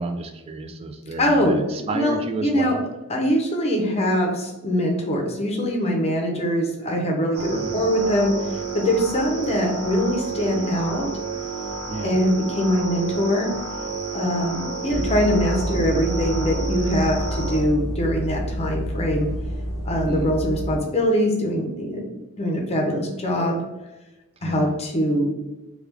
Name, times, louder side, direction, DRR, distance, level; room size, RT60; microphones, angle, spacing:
voice 1, 0.0-2.8 7.5-7.8 11.9-12.2 20.1-20.3 24.4-24.7, right 3 dB, 25° right, 5 dB, 0.3 m, -31 dB
voice 2, 1.2-2.8 3.1-8.4 8.7-11.1 12.0-13.5 14.1-19.3 19.9-23.6 24.4-25.4, equal, 30° left, 0 dB, 0.7 m, -23 dB
sound 1, 7.3-17.6, right 4 dB, 70° right, 1.0 m, -31 dB
sound 2, 14.9-20.8, equal, ahead, 1.5 m, -28 dB
3.2 x 2.3 x 3.3 m, 1.0 s
head